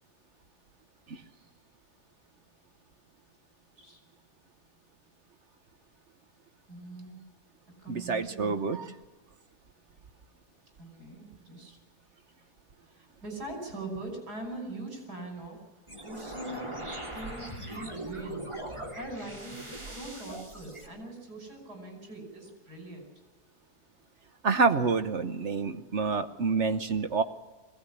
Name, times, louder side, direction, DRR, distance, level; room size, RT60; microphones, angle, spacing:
voice 1, 6.7-7.3 7.8-8.9 10.8-11.8 12.1-12.5 12.8-16.8 17.1-18.5 18.9-23.1, right 2 dB, 80° right, 3 dB, 6.4 m, -42 dB
voice 2, 7.9-8.9 24.4-27.2, right 4 dB, 50° right, 10 dB, 1.1 m, -27 dB
sound 1, 15.9-20.9, right 1 dB, 15° right, 2.9 m, -40 dB
22.0 x 17.5 x 9.9 m, 1.3 s
omnidirectional pair, 1.7 m